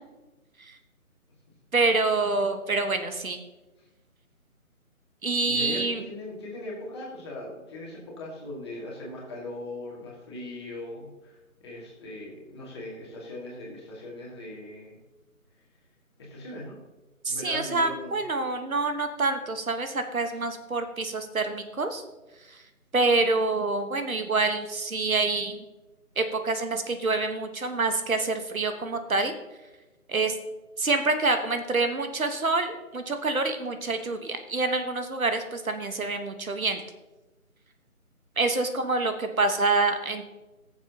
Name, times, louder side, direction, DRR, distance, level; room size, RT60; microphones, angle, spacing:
voice 1, 1.7-3.4 5.2-6.0 17.2-22.0 22.5-22.6 22.9-25.6 26.2-29.3 30.1-30.4 30.8-36.8 38.4-40.3, right 3 dB, 70° right, 7 dB, 1.4 m, -26 dB
voice 2, 5.5-15.0 16.2-16.8 17.3-18.2 20.3-20.4, left 1 dB, 20° left, -4 dB, 2.1 m, -39 dB
19.5 x 7.4 x 2.9 m, 1.1 s
figure-of-eight pair, 160°, 43 cm